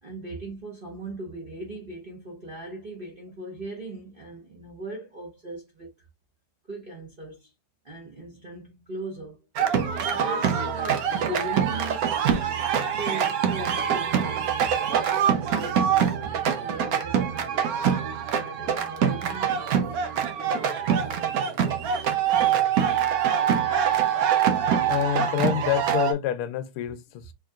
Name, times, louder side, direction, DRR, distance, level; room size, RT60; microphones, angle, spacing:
voice 1, 0.0-5.9 6.7-7.5 7.8-9.5 10.1-12.2 13.0-16.2 16.5-21.6, right 2 dB, 35° right, 0.9 m, -39 dB
sound 1, 9.6-26.1, right 8 dB, 75° right, 0.8 m, -24 dB
voice 2, 24.9-27.3, left 11 dB, 85° left, 1.6 m, -27 dB
4.6 x 3.1 x 2.4 m
omnidirectional pair, 2.3 m